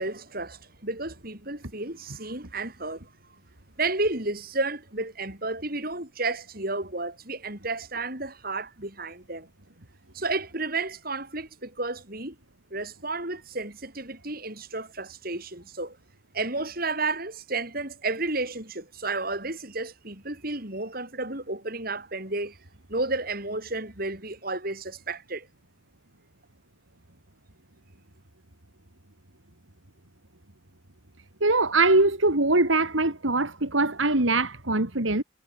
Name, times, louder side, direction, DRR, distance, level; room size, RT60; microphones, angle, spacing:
voice 1, 0.0-3.0 3.8-9.5 10.1-12.3 12.7-16.0 16.3-22.6 22.9-25.5, right 3 dB, 45° right, 6.7 m, -32 dB
voice 2, 31.4-35.2, right 2 dB, 75° right, 3.2 m, -22 dB
head